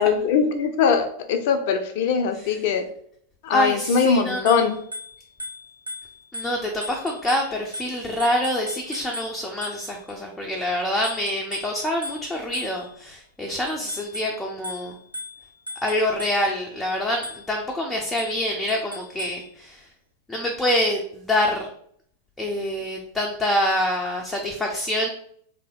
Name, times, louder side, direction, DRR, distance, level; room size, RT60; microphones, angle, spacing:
voice 1, 0.0-2.8 3.4-4.7, left 6 dB, 50° left, 6 dB, 0.6 m, -21 dB
voice 2, 3.5-4.7 6.3-14.9 15.8-19.9 20.3-21.7 22.4-25.1, left 1 dB, 10° left, -1 dB, 0.6 m, -26 dB
Bicycle bell, 4.4-10.1 11.0-13.1 13.7-16.6 17.2-17.6 18.2-19.5, left 1 dB, 85° right, 0.6 m, -38 dB
3.3 x 2.8 x 3.7 m, 0.63 s
figure-of-eight pair, 90°, 0 cm